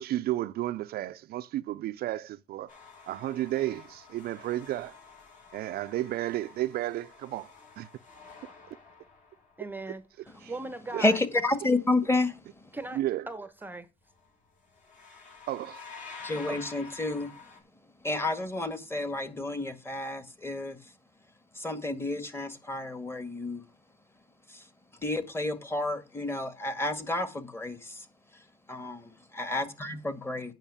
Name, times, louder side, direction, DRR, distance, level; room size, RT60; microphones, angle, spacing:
voice 1, 0.0-2.7 3.1-4.9 5.5-7.9 8.7-8.8 10.4-10.5 10.9-11.0 12.9-13.2 15.5-15.8, right 14 dB, 65° right, 0.5 m, -32 dB
sound 1, 2.7-9.8 14.1-14.3 14.6-17.6, left 5 dB, 50° left, 5.9 m, -49 dB
voice 2, 9.6-11.2 12.7-13.0 13.3-13.9 16.5-16.6, right 2 dB, 10° right, 0.9 m, -39 dB
voice 3, 11.0-12.7 16.2-17.3 18.0-20.8 21.5-23.6 24.5-24.7 25.0-28.1 28.7-30.5, left 2 dB, 15° left, 1.8 m, -30 dB
9.1 x 5.8 x 7.0 m
cardioid pair, 110°, 17 cm